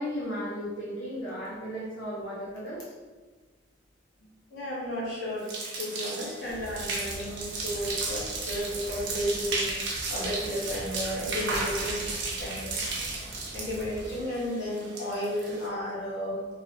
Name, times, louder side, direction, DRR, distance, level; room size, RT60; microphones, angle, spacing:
voice 1, 0.0-2.9, equal, 90° left, -6 dB, 0.7 m, -35 dB
voice 2, 4.5-5.5 5.8-12.0 12.4-12.7 13.5-16.4, equal, 60° left, -7 dB, 1.1 m, -33 dB
sound 1, 5.4-15.7, right 3 dB, 65° right, 0.6 m, -34 dB
sound 2, 6.5-14.2, equal, 35° left, 1.0 m, -44 dB
2.8 x 2.7 x 2.8 m, 1.3 s
head